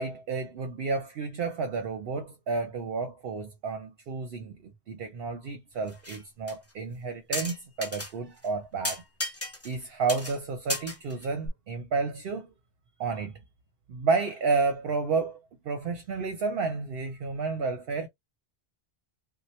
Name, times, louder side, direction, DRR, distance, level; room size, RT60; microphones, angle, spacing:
voice 1, 0.0-9.0 9.6-12.5 13.0-13.3 13.9-18.1, right 4 dB, 65° right, 0.8 m, -31 dB
sound 1, 5.9-6.2 6.5-6.6 7.3-8.1 8.4-8.5 8.8-9.8 10.1-10.4 10.7-11.5, left 1 dB, 15° left, 0.7 m, -34 dB
2.8 x 2.2 x 3.0 m
omnidirectional pair, 1.1 m